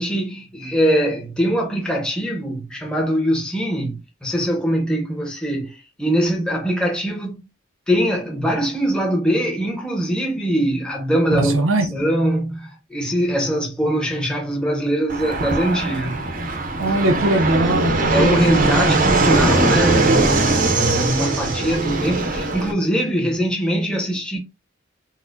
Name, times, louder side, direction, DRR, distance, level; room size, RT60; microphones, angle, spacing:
voice 1, 0.0-7.4 7.9-11.5 11.9-16.2 18.1-24.4, equal, 5° left, 0.8 m, -22 dB
voice 2, 11.4-11.9 16.8-18.6, right 1 dB, 85° right, 0.7 m, -20 dB
Fixed-wing aircraft airplane, 15.1-22.7, right 2 dB, 40° right, 0.6 m, -20 dB
4.1 x 2.1 x 2.5 m
head